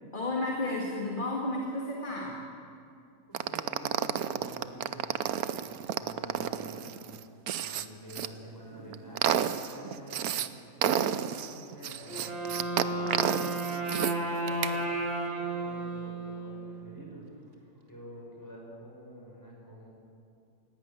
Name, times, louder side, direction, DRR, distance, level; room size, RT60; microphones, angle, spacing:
voice 1, 0.1-2.4, left 2 dB, 35° left, -2 dB, 2.4 m, -32 dB
voice 2, 3.3-5.1 5.5-7.0 7.6-10.4 11.0-17.2 17.9-19.9, equal, 10° left, -2 dB, 6.0 m, -48 dB
sound 1, 3.3-8.3 8.8-10.5 10.8-14.1 14.5-14.8, right 9 dB, 85° right, 1.2 m, -31 dB
Wind instrument woodwind instrument, 12.1-16.9, right 2 dB, 40° right, 2.5 m, -33 dB
19.0 x 16.0 x 9.1 m, 2.4 s
omnidirectional pair, 1.5 m